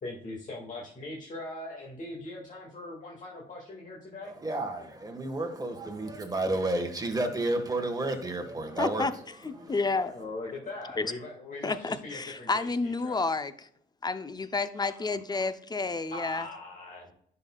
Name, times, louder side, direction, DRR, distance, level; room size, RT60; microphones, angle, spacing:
voice 1, 0.0-4.4 8.6-9.1 9.4-13.2 16.1-17.1, left 2 dB, 40° left, -2 dB, 1.9 m, -41 dB
voice 2, 4.2-9.2 9.6-9.8, right 2 dB, 20° right, 3 dB, 1.5 m, -31 dB
voice 3, 8.8-9.1 9.4-10.2 11.0-11.1 11.6-13.7 14.0-16.5, left 3 dB, 20° left, 12 dB, 0.6 m, -30 dB
10.5 x 5.5 x 2.3 m, 0.65 s
cardioid pair, 90°, 20 cm